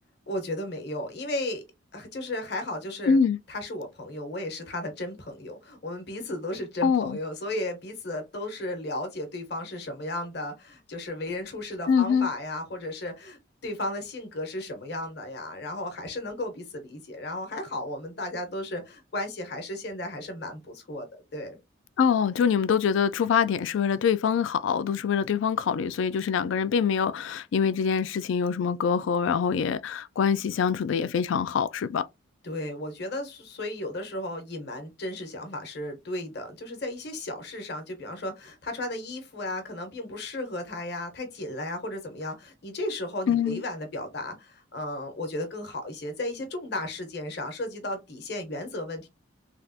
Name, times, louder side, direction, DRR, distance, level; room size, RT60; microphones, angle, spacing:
voice 1, 0.3-1.6 1.9-3.2 3.5-21.6 32.4-49.1, left 1 dB, 55° left, 1.0 m, -34 dB
voice 2, 3.0-3.4 6.8-7.2 11.9-12.3 22.0-32.1 43.3-43.6, left 6 dB, 70° left, 0.3 m, -24 dB
3.3 x 2.4 x 2.7 m
head